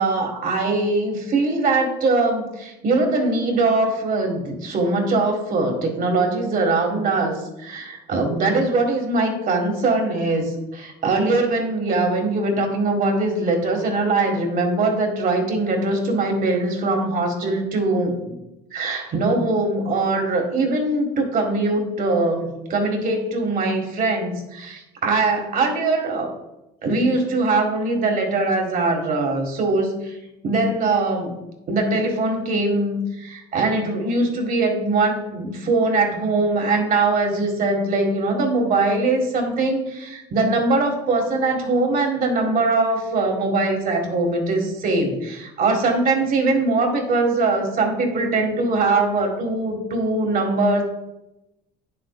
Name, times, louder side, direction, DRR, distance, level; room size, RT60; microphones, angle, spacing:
voice 1, 0.0-18.2 18.7-26.3 26.8-30.2 30.4-31.4 31.7-50.8, right 2 dB, 50° right, 2 dB, 1.9 m, -21 dB
9.4 x 7.5 x 2.4 m, 0.94 s
cardioid pair, 105°, 18 cm